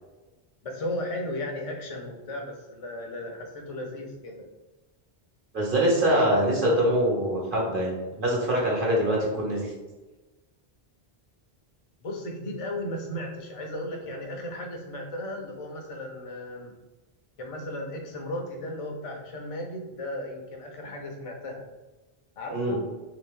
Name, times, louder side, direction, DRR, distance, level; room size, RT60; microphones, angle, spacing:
voice 1, 0.6-4.4 12.0-16.7 17.4-21.6 22.4-22.8, left 1 dB, 40° left, 1 dB, 0.6 m, -35 dB
voice 2, 5.5-7.9 8.2-9.7 22.5-22.8, right 1 dB, 55° right, -4 dB, 1.3 m, -24 dB
3.3 x 2.8 x 3.6 m, 1.1 s
omnidirectional pair, 1.0 m